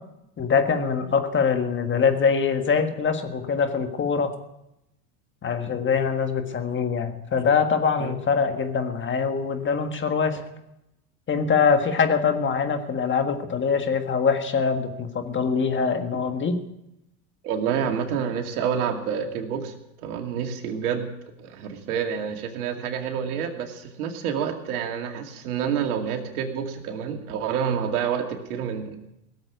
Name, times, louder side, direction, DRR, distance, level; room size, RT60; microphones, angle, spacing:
voice 1, 0.4-4.3 5.4-10.4 11.3-16.6, left 6 dB, 25° left, 7 dB, 1.7 m, -23 dB
voice 2, 17.4-21.1 21.4-29.0, right 7 dB, 80° right, 4 dB, 2.3 m, -28 dB
17.5 x 7.7 x 9.3 m, 0.88 s
supercardioid pair, 110°, 44 cm